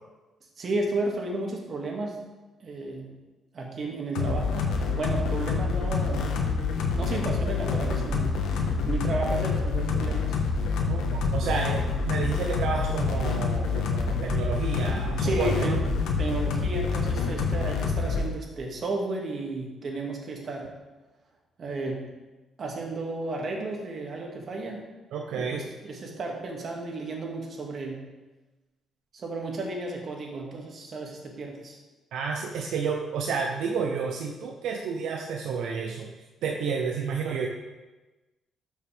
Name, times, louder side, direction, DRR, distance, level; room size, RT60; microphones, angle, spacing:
voice 1, 0.6-2.2 2.6-3.2 3.5-4.7 4.9-6.4 6.9-8.4 8.8-10.4 15.2-15.8 16.2-20.7 21.6-22.1 22.6-24.9 25.3-28.1 29.1-31.8, right 2 dB, 50° right, 0 dB, 2.2 m, -33 dB
sound 1, 4.2-18.3, left 4 dB, 85° left, 1.3 m, -27 dB
voice 2, 10.8-15.8 25.1-25.6 32.1-36.1 36.4-37.5, right 5 dB, 80° right, 1 dB, 0.8 m, -30 dB
13.0 x 6.4 x 3.5 m, 1.2 s
cardioid pair, 90°, 0 cm